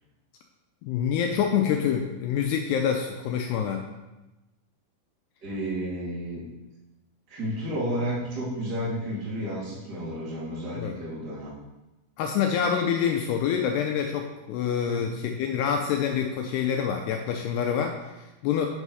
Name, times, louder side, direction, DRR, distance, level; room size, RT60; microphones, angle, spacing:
voice 1, 0.8-3.8 10.8-11.0 12.2-18.7, left 8 dB, 85° left, 3 dB, 2.3 m, -26 dB
voice 2, 5.4-6.4 7.3-11.5 14.9-15.0, equal, 30° right, -7 dB, 2.4 m, -31 dB
9.3 x 5.5 x 4.7 m, 1.0 s
omnidirectional pair, 5.4 m